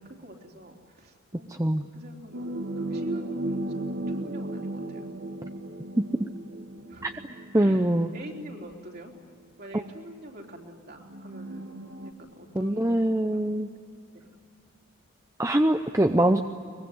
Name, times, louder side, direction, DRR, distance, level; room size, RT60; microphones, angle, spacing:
voice 1, 0.0-1.5 1.9-5.2 6.9-7.1 7.5-9.1 9.6-11.7 12.0-13.4 13.7-13.8 14.1-14.3, right 1 dB, 45° right, 0 dB, 3.6 m, -45 dB
voice 2, 1.5-1.8 6.0-6.3 7.0-7.1 7.5-8.1 12.5-13.7 15.4-16.4, right 1 dB, 15° right, 6 dB, 0.6 m, -23 dB
sound 1, 2.3-8.2 9.1-9.2 11.0-12.1, right 1 dB, 70° right, 1.7 m, -35 dB
23.5 x 22.0 x 9.6 m, 2.2 s
head